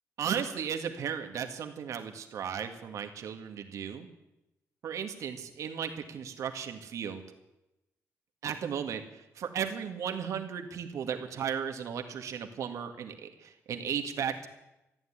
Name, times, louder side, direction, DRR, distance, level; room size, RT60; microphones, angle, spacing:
voice 1, 0.2-4.1 4.8-7.2 8.4-9.0 9.4-14.5, right 8 dB, 75° right, 6 dB, 1.9 m, -35 dB
14.5 x 9.6 x 9.7 m, 0.93 s
cardioid pair, 120°, 5 cm